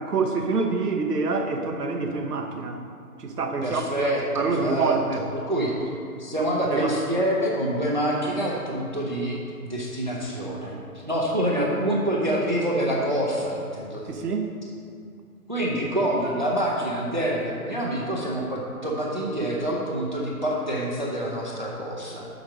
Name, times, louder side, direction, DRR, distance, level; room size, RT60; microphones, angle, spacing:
voice 1, 0.0-2.8 3.2-5.2 6.7-7.0 14.1-14.5, right 4 dB, 85° right, 3 dB, 0.9 m, -26 dB
voice 2, 3.6-5.7 6.2-10.8 11.0-14.1 15.5-22.3, right 1 dB, 30° right, -3 dB, 0.7 m, -26 dB
7.5 x 5.1 x 6.1 m, 2.4 s
hypercardioid pair, 180°, 45 cm